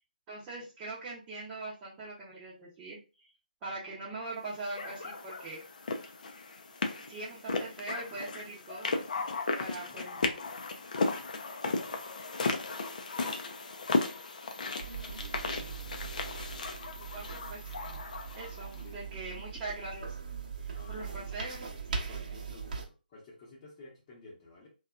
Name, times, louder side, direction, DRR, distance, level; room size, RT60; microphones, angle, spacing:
voice 1, 0.3-3.3 3.6-5.6 6.0-6.1 7.1-9.0 9.6-10.2 17.0-17.6 18.4-20.1 20.6-21.6 21.9-22.0, right 2 dB, 20° right, -8 dB, 0.8 m, -42 dB
sound 1, 4.8-18.8, left 3 dB, 55° left, 0.5 m, -35 dB
voice 2, 9.9-10.4 18.7-19.2 20.7-21.5 22.0-24.7, left 2 dB, 25° left, -8 dB, 0.9 m, -53 dB
sound 2, 14.8-22.8, right 5 dB, 50° right, 0.8 m, -41 dB
2.7 x 2.3 x 2.4 m, 0.31 s
figure-of-eight pair, 145°, 5 cm